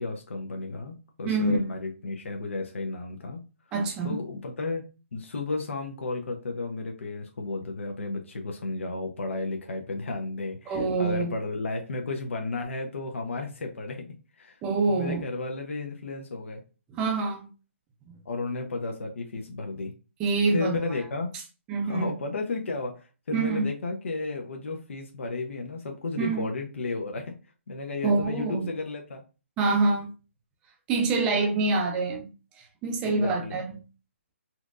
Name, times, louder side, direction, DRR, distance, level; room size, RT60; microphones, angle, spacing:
voice 1, 0.0-3.4 4.0-4.8 5.1-14.1 14.4-14.6 14.9-16.6 18.2-19.9 20.5-21.3 21.8-27.4 27.7-29.2 33.0-33.6, left 3 dB, 65° left, 0.8 m, -33 dB
voice 2, 1.2-1.6 3.7-4.2 10.7-11.3 14.6-15.2 16.9-17.5 20.2-20.8 21.7-22.1 23.3-23.7 26.2-26.4 28.0-28.7 29.6-30.1 30.9-32.3 32.8-33.8, right 3 dB, 10° right, 0.5 m, -25 dB
4.3 x 2.6 x 2.4 m
hypercardioid pair, 170°, 7 cm